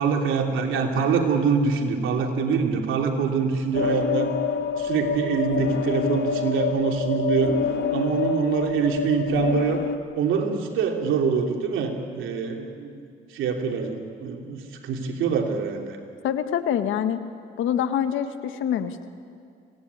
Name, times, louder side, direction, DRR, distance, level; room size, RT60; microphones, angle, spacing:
voice 1, 0.0-4.3 4.8-7.6 7.9-9.8 10.1-13.1 13.3-16.0, right 5 dB, 85° right, 2 dB, 3.1 m, -24 dB
sound 1, 3.7-10.0, left 6 dB, 65° left, 1.5 m, -27 dB
voice 2, 16.2-17.2 17.6-19.1, left 9 dB, 80° left, 9 dB, 1.6 m, -25 dB
25.5 x 18.0 x 9.6 m, 2.3 s
cardioid pair, 90°, 20 cm